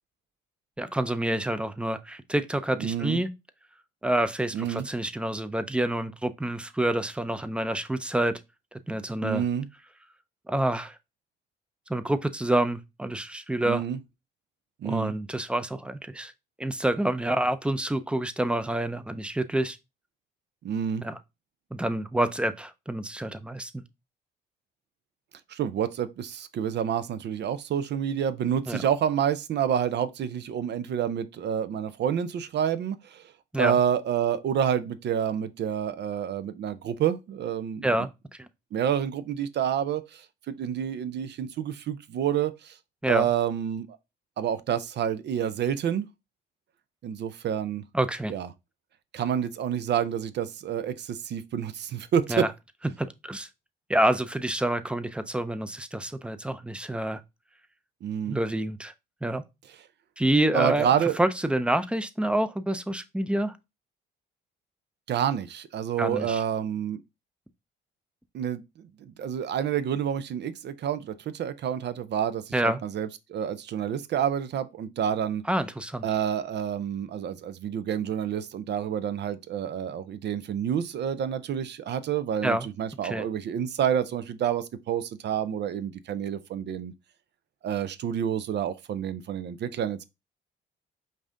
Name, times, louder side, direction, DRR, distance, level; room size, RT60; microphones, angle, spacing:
voice 1, 0.8-3.3 4.0-8.4 8.7-9.4 10.5-10.9 11.9-13.8 14.8-16.3 16.6-19.8 21.0-21.2 21.7-23.8 28.7-28.9 33.5-33.8 37.8-38.1 43.0-43.3 47.9-48.3 52.3-52.5 53.0-53.5 53.9-57.2 58.3-58.9 59.2-59.4 60.2-60.9 61.2-63.5 66.0-66.4 72.5-72.8 75.5-76.1 82.4-82.7 83.0-83.2, right 1 dB, 5° right, 0.5 m, -27 dB
voice 2, 2.8-3.2 4.5-4.9 9.2-9.7 13.6-14.0 14.8-15.1 20.6-21.0 25.5-33.2 33.6-37.9 38.7-42.8 43.1-43.9 44.4-46.1 47.0-47.8 48.3-48.5 49.1-52.5 58.0-58.4 60.5-61.2 65.1-67.0 68.3-68.6 69.0-75.4 76.0-86.9 87.6-90.1, right 9 dB, 60° right, 0.5 m, -28 dB
5.3 x 2.6 x 3.6 m
cardioid pair, 90°, 20 cm